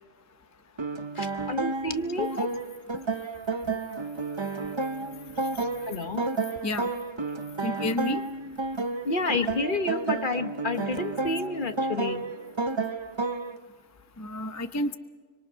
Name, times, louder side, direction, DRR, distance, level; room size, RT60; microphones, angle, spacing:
sound 1, 0.8-13.6, right 3 dB, 30° right, 0.6 m, -31 dB
voice 1, 1.1-2.4 5.8-6.3 9.0-12.2, left 2 dB, 40° left, 8 dB, 1.3 m, -30 dB
voice 2, 7.6-8.2 14.2-15.0, left 2 dB, 15° left, 9 dB, 0.6 m, -30 dB
26.0 x 25.0 x 5.6 m, 1.5 s
omnidirectional pair, 1.3 m